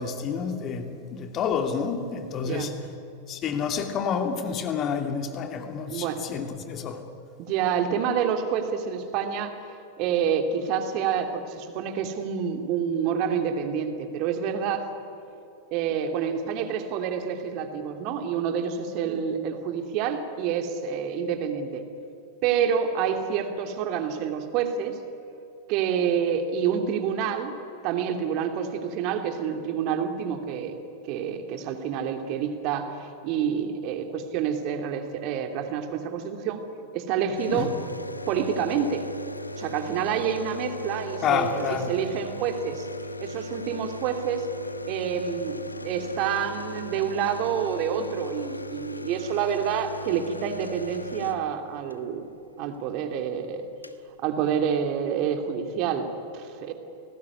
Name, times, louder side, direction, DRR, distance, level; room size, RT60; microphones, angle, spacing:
voice 1, 0.0-2.7 3.3-7.0 37.5-37.7 41.2-41.9, left 6 dB, 30° left, 6 dB, 2.7 m, -29 dB
voice 2, 2.4-2.7 5.9-6.2 7.4-9.6 10.0-14.9 15.7-21.9 22.4-25.0 25.7-27.5 27.8-30.8 31.0-36.6 36.9-37.7 38.3-39.0 39.6-42.9 43.2-44.5 44.8-52.3 52.6-53.7 54.2-56.1 56.3-56.7, right 7 dB, 40° right, 6 dB, 2.8 m, -28 dB
sound 1, 37.4-52.0 53.3-53.4 53.6-54.0, left 1 dB, 85° left, 1.1 m, -37 dB
30.0 x 19.5 x 9.8 m, 2.7 s
figure-of-eight pair, 90°, 0 cm